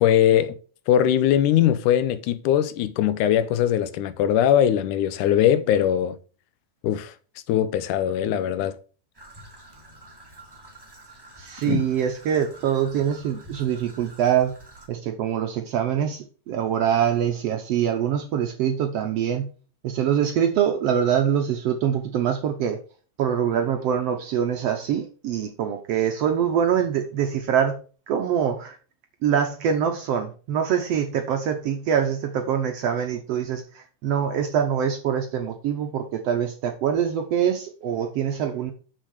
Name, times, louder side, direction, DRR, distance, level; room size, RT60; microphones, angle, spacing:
voice 1, 0.0-0.6 0.9-6.2 6.8-7.1 7.5-8.8 11.7-11.9, left 10 dB, 85° left, 2.1 m, -21 dB
Traffic noise roadway noise / Trickle dribble, 9.1-14.9, right 1 dB, 10° right, 1.7 m, -48 dB
voice 2, 11.4-14.5 14.9-19.5 19.8-22.8 23.2-27.8 28.1-28.8 29.2-38.7, right 8 dB, 70° right, 1.5 m, -24 dB
6.4 x 6.2 x 6.4 m
omnidirectional pair, 3.7 m